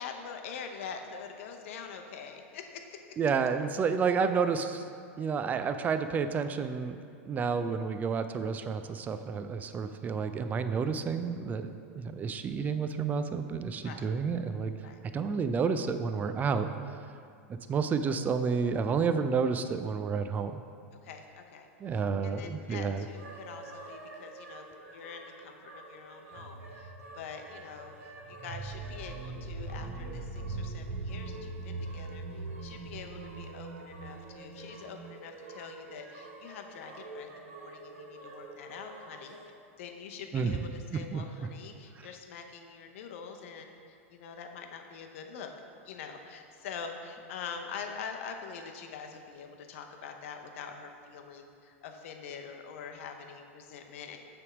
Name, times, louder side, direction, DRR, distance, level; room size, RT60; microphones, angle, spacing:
voice 1, 0.0-3.2 13.8-14.1 14.8-15.0 21.0-24.6 24.9-39.5 39.8-45.5 45.8-54.2, left 6 dB, 70° left, 5 dB, 0.7 m, -45 dB
voice 2, 3.2-4.8 5.2-7.0 7.3-14.7 15.1-16.7 17.7-20.6 21.8-23.1 40.3-40.6 40.9-41.2, right 5 dB, 20° right, 9 dB, 0.4 m, -30 dB
sound 1, 23.0-39.5, right 2 dB, 90° right, 1.2 m, -49 dB
sound 2, 26.3-34.8, right 3 dB, 55° right, 0.8 m, -41 dB
6.8 x 3.5 x 6.0 m, 2.3 s
hypercardioid pair, 115°, 7 cm